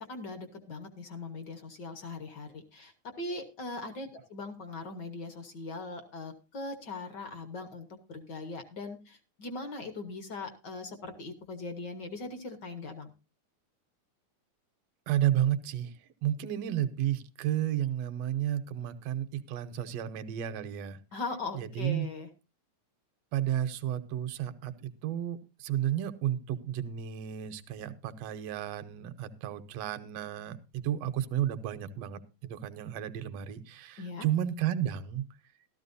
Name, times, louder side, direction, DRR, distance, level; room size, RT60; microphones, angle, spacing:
voice 1, 0.1-13.1 21.1-22.3 34.0-34.3, left 3 dB, 55° left, 8 dB, 1.3 m, -40 dB
voice 2, 15.1-15.9 16.2-21.0 21.5-22.1 23.3-35.2, right 11 dB, 70° right, 10 dB, 1.8 m, -32 dB
14.5 x 13.0 x 2.6 m, 0.29 s
omnidirectional pair, 3.3 m